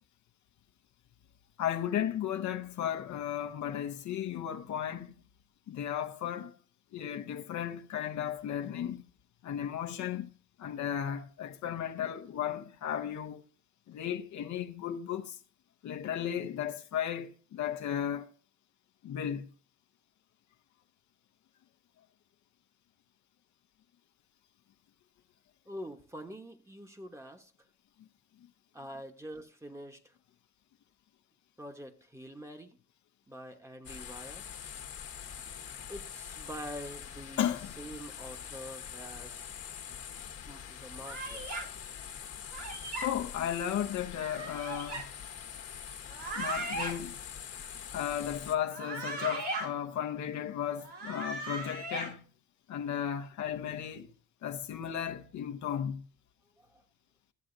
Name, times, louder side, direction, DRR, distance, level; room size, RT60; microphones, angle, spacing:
voice 1, 1.6-5.2 5.7-6.5 6.9-9.0 9.4-10.3 10.6-13.4 13.9-15.4 15.8-18.3 19.0-19.5 28.0-28.1 37.4-37.8 42.9-45.1 46.3-47.2 47.9-52.2 52.7-54.1 54.4-56.1, left 10 dB, 70° left, 0.8 m, -35 dB
voice 2, 25.7-27.5 28.7-30.1 31.6-32.8 33.3-34.5 35.9-39.5 40.5-41.5 56.6-56.8, equal, 10° right, 1.2 m, -45 dB
sound 1, 33.8-48.5, left 8 dB, 55° left, 1.2 m, -44 dB
sound 2, 41.0-41.6 42.5-43.1 44.2-45.0 46.0-46.9 48.6-49.7 50.8-52.1, right 2 dB, 70° right, 4.3 m, -37 dB
14.0 x 7.6 x 2.6 m
cardioid pair, 90°, 30 cm